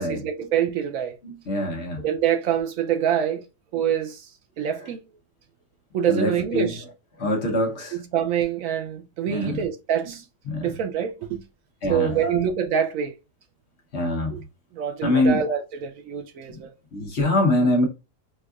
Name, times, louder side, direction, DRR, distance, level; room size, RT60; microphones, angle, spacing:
voice 1, 0.0-1.2 2.0-3.4 3.7-4.3 4.6-5.0 5.9-6.8 7.9-10.2 10.6-11.4 11.9-13.1 14.3-14.4 14.7-16.7, right 9 dB, 70° right, 0.8 m, -25 dB
voice 2, 1.2-2.0 6.1-6.7 7.2-8.0 9.3-9.6 10.5-10.7 11.8-12.4 13.9-14.4 15.0-15.4 16.9-17.9, left 1 dB, 50° left, 1.0 m, -24 dB
4.5 x 2.3 x 2.3 m
omnidirectional pair, 1.8 m